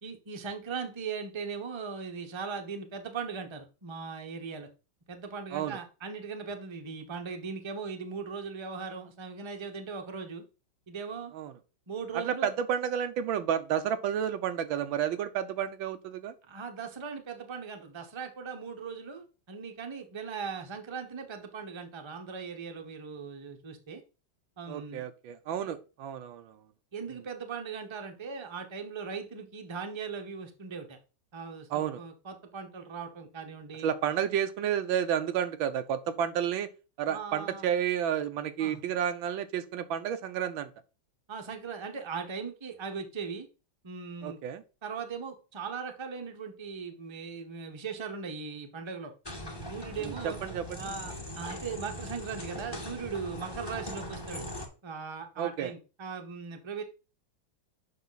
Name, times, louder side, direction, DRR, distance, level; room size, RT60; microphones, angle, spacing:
voice 1, 0.0-4.7 5.1-10.4 10.9-11.3 11.9-12.5 16.5-24.0 24.6-25.0 25.7-25.8 26.9-31.0 31.3-33.9 37.1-37.7 38.6-38.8 41.3-43.5 43.8-44.4 44.8-49.1 49.7-50.4 50.8-54.5 54.8-56.8, right 5 dB, 20° right, 0.7 m, -39 dB
voice 2, 12.1-16.3 24.7-26.6 31.7-32.0 33.8-36.7 37.0-40.7 44.2-44.6 50.0-50.9 55.4-55.7, right 9 dB, 90° right, 1.5 m, -31 dB
sound 1, 49.3-54.7, equal, 15° left, 1.2 m, -40 dB
7.0 x 5.7 x 4.0 m
omnidirectional pair, 2.1 m